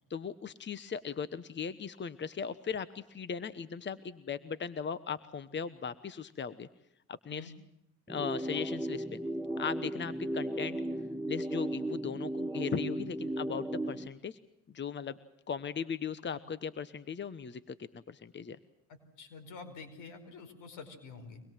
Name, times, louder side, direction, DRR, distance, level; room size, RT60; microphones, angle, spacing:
voice 1, 0.1-6.7 7.1-7.5 8.1-9.2 9.6-10.8 11.3-14.4 14.7-15.2 15.5-18.6, left 6 dB, 35° left, 15 dB, 1.2 m, -38 dB
sound 1, 8.1-14.1, right 1 dB, ahead, 1.1 m, -35 dB
voice 2, 18.9-21.4, left 4 dB, 90° left, 8 dB, 4.9 m, -48 dB
25.0 x 21.0 x 7.5 m, 0.80 s
cardioid pair, 90°, 30 cm